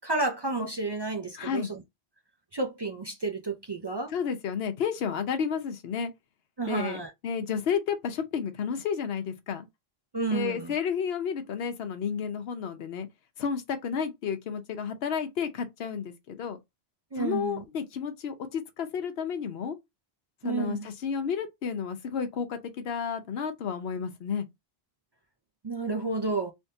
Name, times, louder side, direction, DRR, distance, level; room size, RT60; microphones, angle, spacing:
voice 1, 0.0-1.8 2.5-4.1 6.6-7.1 10.1-10.7 17.1-17.6 20.4-20.8 25.6-26.5, right 3 dB, 40° right, 0.4 m, -31 dB
voice 2, 1.4-1.7 4.1-6.1 6.7-9.7 10.3-13.1 13.4-16.6 17.2-19.8 20.4-24.5, left 7 dB, 75° left, 0.9 m, -31 dB
3.4 x 2.7 x 2.6 m
omnidirectional pair, 1.1 m